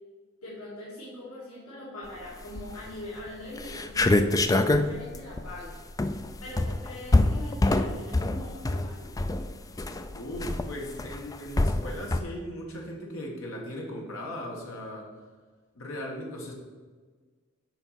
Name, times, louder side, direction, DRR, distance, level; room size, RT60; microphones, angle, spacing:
voice 1, 0.4-6.1 6.4-9.1, left 1 dB, 85° left, -7 dB, 2.3 m, -42 dB
sound 1, 2.4-2.9 3.3-3.4 3.6-12.2, left 2 dB, 15° left, 0.3 m, -26 dB
voice 2, 10.1-15.1 15.7-16.5, equal, 65° left, -1 dB, 1.7 m, -38 dB
7.8 x 5.6 x 5.7 m, 1.5 s
head